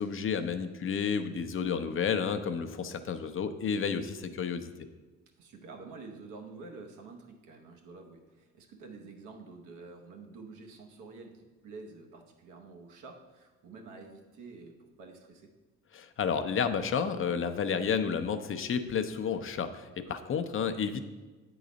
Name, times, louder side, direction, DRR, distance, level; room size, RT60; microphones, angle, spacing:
voice 1, 0.0-4.7 15.9-21.0, left 6 dB, 45° left, 9 dB, 0.6 m, -31 dB
voice 2, 5.4-15.5 20.0-20.1, right 3 dB, 90° right, 2 dB, 1.1 m, -48 dB
8.2 x 3.9 x 5.1 m, 1.3 s
cardioid pair, 90°, 30 cm